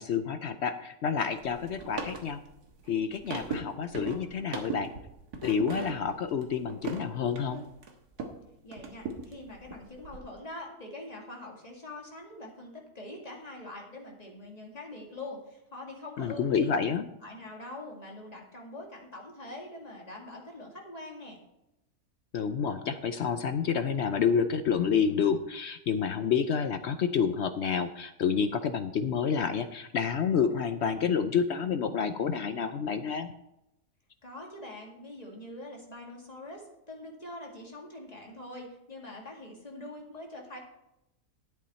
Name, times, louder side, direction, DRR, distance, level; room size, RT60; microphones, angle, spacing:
voice 1, 0.0-2.4 2.9-4.9 5.4-7.6 16.2-17.1 22.3-33.3, left 6 dB, 65° left, 10 dB, 0.7 m, -29 dB
sound 1, 1.4-8.4 8.7-10.2, right 4 dB, 80° right, 1.9 m, -39 dB
voice 2, 8.6-16.8 17.2-21.4 34.2-40.6, left 2 dB, 25° left, -1 dB, 2.2 m, -44 dB
11.5 x 8.4 x 4.3 m, 0.87 s
omnidirectional pair, 1.6 m